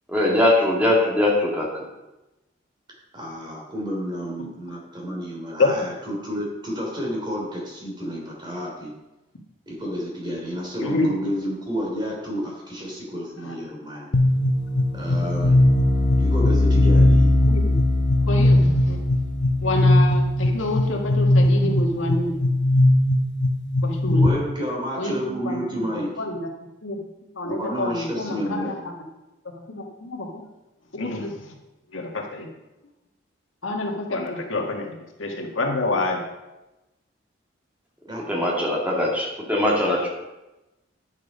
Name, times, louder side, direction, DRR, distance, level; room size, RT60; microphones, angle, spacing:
voice 1, 0.1-1.9 38.3-40.1, left 1 dB, 5° right, -3 dB, 2.3 m, -21 dB
voice 2, 3.1-8.9 9.7-14.1 14.9-15.6 16.2-17.3 24.1-26.2 27.4-28.7 38.1-38.3, equal, 25° right, -2 dB, 3.1 m, -30 dB
sound 1, 14.1-24.3, left 1 dB, 65° left, 0.9 m, -19 dB
voice 3, 18.3-19.0 19.6-22.4 23.8-24.3 25.0-25.6 25.9-26.5 26.8-27.0 27.4-28.9 29.7-30.4 30.9-31.5 31.9-32.5 33.6-36.2, left 2 dB, 90° left, 1 dB, 1.7 m, -27 dB
10.5 x 7.4 x 5.3 m, 1.0 s
head